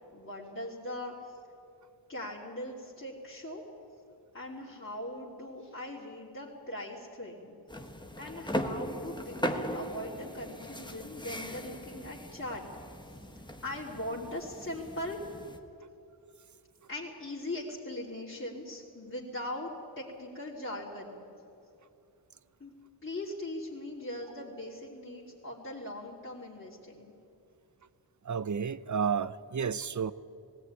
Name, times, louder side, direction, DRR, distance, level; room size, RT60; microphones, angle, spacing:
voice 1, 0.1-1.2 2.1-3.6 4.3-7.6 8.2-12.7 13.6-15.2 16.9-21.2 22.6-22.7 23.0-27.1, left 1 dB, 30° left, -6 dB, 3.1 m, -40 dB
sound 1, 7.7-15.6, equal, 10° left, 1.3 m, -38 dB
voice 2, 28.2-30.1, right 6 dB, 45° right, 17 dB, 0.6 m, -31 dB
18.0 x 17.5 x 9.6 m, 2.7 s
wide cardioid pair, 90°, 43 cm